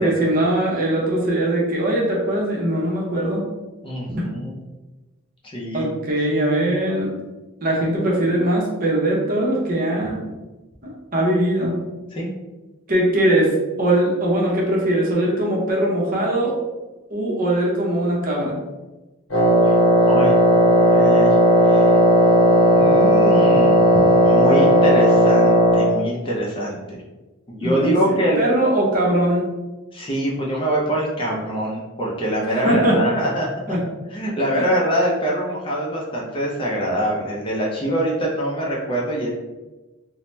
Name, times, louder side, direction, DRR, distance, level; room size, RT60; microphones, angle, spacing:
voice 1, 0.0-3.4 4.1-4.3 5.7-7.1 7.6-10.2 10.8-11.8 12.9-16.5 17.1-18.6 27.6-29.5 32.6-33.0 33.7-33.8, right 1 dB, 40° right, -3 dB, 0.7 m, -21 dB
voice 2, 3.8-4.6 5.4-5.9 12.1-12.3 19.6-19.8 20.0-20.4 20.9-21.4 21.6-22.0 22.7-23.9 24.2-27.0 27.5-28.4 29.9-33.5 34.1-39.3, right 1 dB, 25° left, -3 dB, 0.5 m, -24 dB
Wind instrument woodwind instrument, 19.3-26.0, equal, 65° left, 0.8 m, -15 dB
2.7 x 2.0 x 3.1 m, 1.1 s
head